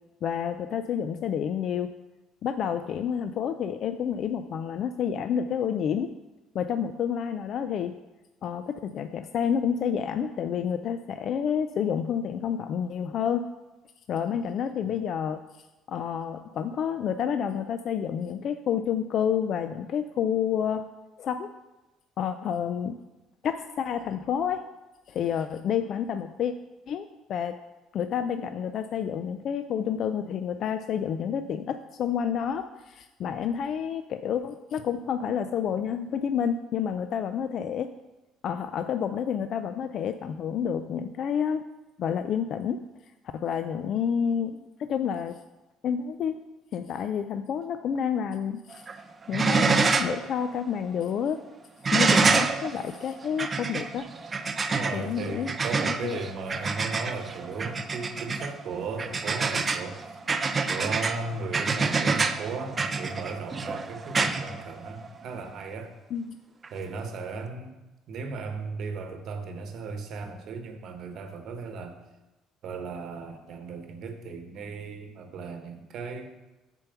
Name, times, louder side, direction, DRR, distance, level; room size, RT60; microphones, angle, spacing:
voice 1, 0.2-1.9 2.4-6.1 6.5-8.0 8.4-13.4 14.1-15.4 15.9-20.9 21.2-21.5 22.2-23.0 23.4-24.6 25.1-26.5 26.9-27.5 27.9-37.9 38.4-41.6 42.0-42.8 43.3-45.4 45.8-46.4 46.7-48.9 49.3-51.4 51.9-54.1 54.9-55.5 55.8-56.2 66.1-66.4, left 8 dB, 50° left, 9 dB, 0.3 m, -29 dB
sound 1, 48.7-49.0 49.3-50.2 50.6-50.7 51.8-65.2 66.6-66.7, right 4 dB, 25° right, 0.5 m, -27 dB
voice 2, 54.7-60.0 60.7-65.9 66.7-67.8 68.1-72.0 72.6-76.3, right 4 dB, 55° right, 6 dB, 1.0 m, -36 dB
6.9 x 4.6 x 6.7 m, 1.1 s
cardioid pair, 130°, 0 cm